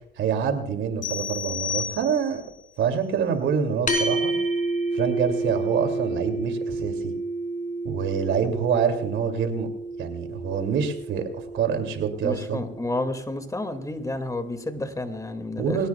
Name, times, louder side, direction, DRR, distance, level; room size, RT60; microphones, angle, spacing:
voice 1, 0.2-2.4 2.8-4.3 4.9-7.1 7.8-9.7 10.0-12.6 15.6-15.9, right 7 dB, 80° right, 6 dB, 2.7 m, -26 dB
sound 1, 1.0-2.5, left 7 dB, 70° left, 5.1 m, -32 dB
sound 2, 3.9-12.5, right 2 dB, 40° left, 4.3 m, -30 dB
voice 2, 12.2-15.8, left 2 dB, 15° left, 8 dB, 2.2 m, -30 dB
22.5 x 18.0 x 2.3 m, 0.71 s
cardioid pair, 90°, 20 cm